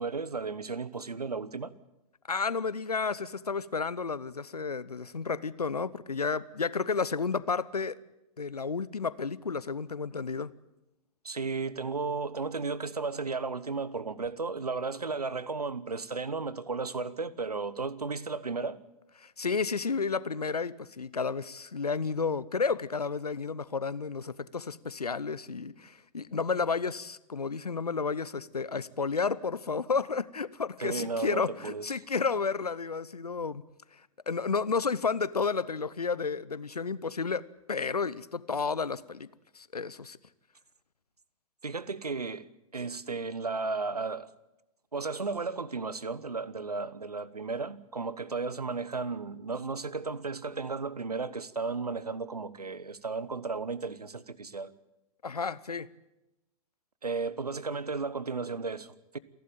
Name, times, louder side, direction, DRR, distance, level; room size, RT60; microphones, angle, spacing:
voice 1, 0.0-1.7 11.2-18.8 30.8-31.9 41.6-42.5 42.7-44.3 44.9-54.7 57.0-59.2, right 4 dB, 80° right, 1.0 m, -34 dB
voice 2, 2.3-8.0 8.4-10.5 19.2-33.6 33.9-39.3 39.5-40.2 55.2-55.9, left 5 dB, 80° left, 0.8 m, -31 dB
28.5 x 12.0 x 9.0 m
figure-of-eight pair, 105°, 20 cm